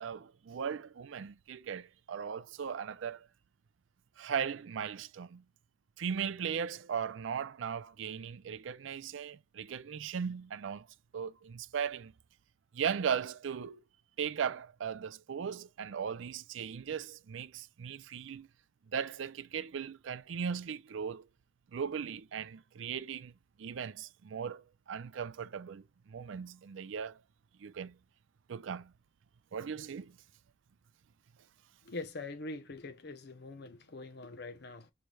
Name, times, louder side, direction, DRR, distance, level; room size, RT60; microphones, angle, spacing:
voice 1, 0.0-3.3 4.2-5.4 6.0-10.9 11.1-12.1 12.7-13.8 14.2-18.5 18.9-21.3 21.7-23.3 23.6-27.2 27.6-28.0 28.5-28.9 29.5-30.2, right 7 dB, 70° right, 0.4 m, -38 dB
voice 2, 31.8-34.9, left 3 dB, 60° left, 0.8 m, -43 dB
5.7 x 3.2 x 2.3 m
head